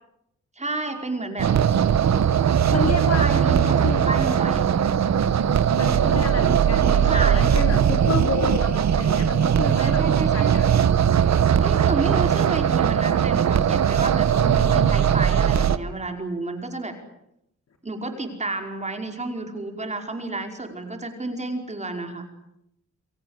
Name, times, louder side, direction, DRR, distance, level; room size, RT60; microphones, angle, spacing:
voice 1, 0.6-1.5 3.2-4.7 6.8-7.6 9.7-10.9 11.6-14.3 14.6-16.9 17.8-22.3, right 2 dB, 25° right, 4 dB, 5.1 m, -31 dB
sound 1, 1.4-15.8, right 8 dB, 65° right, 1.2 m, -20 dB
voice 2, 2.7-4.4 5.7-10.0 10.3-10.7 14.3-14.9, left 5 dB, 60° left, 4 dB, 3.4 m, -30 dB
29.0 x 22.5 x 8.1 m, 0.79 s
wide cardioid pair, 145°, 29 cm